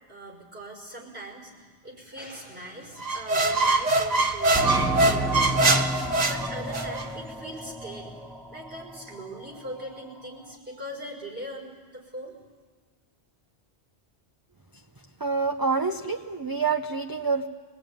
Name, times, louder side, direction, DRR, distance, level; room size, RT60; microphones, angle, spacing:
voice 1, 0.1-8.2 8.5-12.4, right 1 dB, 65° right, 0 dB, 5.6 m, -41 dB
sound 1, 3.0-7.1, right 2 dB, 40° right, 1.0 m, -23 dB
sound 2, 4.5-8.8 9.1-9.2 9.8-9.9, right 1 dB, ahead, 0.9 m, -30 dB
voice 2, 15.2-17.5, right 4 dB, 25° right, 5 dB, 0.6 m, -27 dB
23.5 x 19.0 x 9.1 m, 1.5 s
omnidirectional pair, 1.1 m